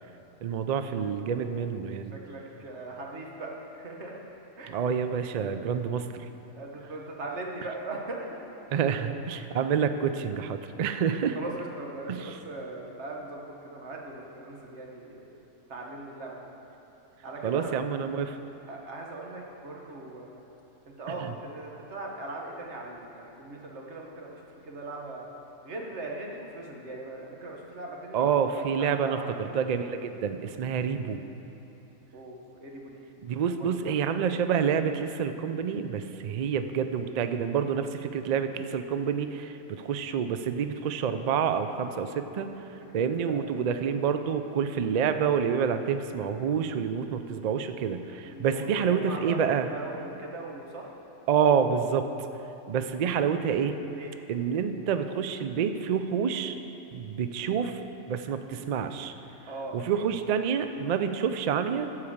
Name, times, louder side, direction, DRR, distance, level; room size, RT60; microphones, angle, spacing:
voice 1, 0.4-2.2 4.7-6.3 8.7-11.4 12.1-12.3 17.4-18.4 21.2-21.3 28.1-31.2 33.2-42.5 42.9-49.7 51.3-52.1 52.7-53.7 54.3-56.6 56.9-57.8 58.1-59.1 59.7-61.9, right 7 dB, 80° right, 9 dB, 0.3 m, -28 dB
voice 2, 1.2-1.6 2.1-4.2 4.6-4.7 6.5-8.4 11.3-15.3 15.7-16.5 17.2-17.7 18.7-20.4 20.9-25.3 25.6-28.3 28.6-29.3 32.1-33.0 33.4-34.0 41.8-42.2 42.9-43.6 46.4-46.7 48.2-50.9 52.8-52.9 54.0-54.1 59.5-59.9, right 2 dB, 60° right, -1 dB, 1.6 m, -40 dB
14.5 x 4.8 x 7.1 m, 3.0 s
omnidirectional pair, 1.3 m